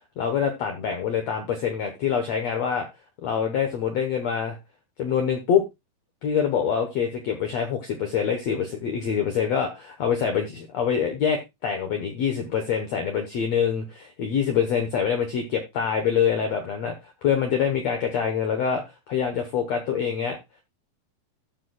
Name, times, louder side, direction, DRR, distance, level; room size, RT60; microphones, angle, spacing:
voice 1, 0.2-2.9 3.2-4.6 5.0-5.6 6.2-20.4, left 7 dB, 75° left, 5 dB, 1.5 m, -25 dB
14.5 x 6.8 x 2.3 m, 0.22 s
omnidirectional pair, 4.5 m